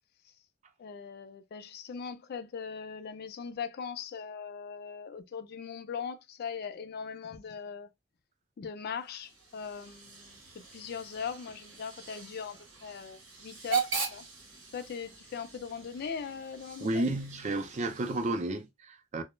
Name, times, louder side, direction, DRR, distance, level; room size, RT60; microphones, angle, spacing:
voice 1, 0.8-7.9 8.6-14.2 14.7-17.1, left 6 dB, 50° left, 0.3 m, -40 dB
Hiss / Train / Alarm, 9.0-18.6, right 6 dB, 85° right, 0.9 m, -40 dB
voice 2, 16.8-19.2, right 2 dB, 35° right, 0.4 m, -32 dB
2.3 x 2.0 x 3.0 m
head